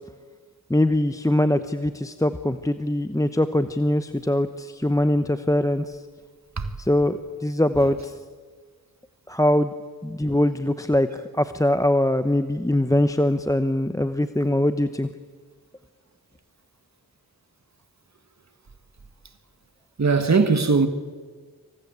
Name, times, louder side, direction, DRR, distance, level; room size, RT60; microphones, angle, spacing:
voice 1, 0.7-5.8 6.9-8.0 9.3-9.7 10.0-11.1 11.4-15.1, left 1 dB, 10° left, 1.0 m, -22 dB
voice 2, 20.0-20.9, right 4 dB, 50° right, 2.0 m, -20 dB
26.5 x 25.5 x 8.2 m
wide cardioid pair, 70°, 35 cm